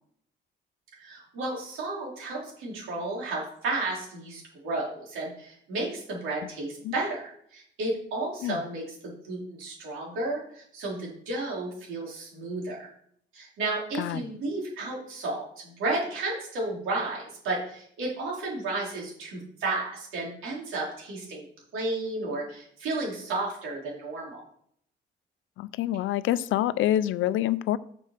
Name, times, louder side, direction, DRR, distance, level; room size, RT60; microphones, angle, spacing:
voice 1, 1.0-12.8 13.3-21.4 21.7-24.4, right 2 dB, 90° right, 3.7 m, -33 dB
voice 2, 25.6-27.8, left 13 dB, 85° left, 0.5 m, -26 dB
7.4 x 6.2 x 5.8 m
cardioid pair, 90°, 20 cm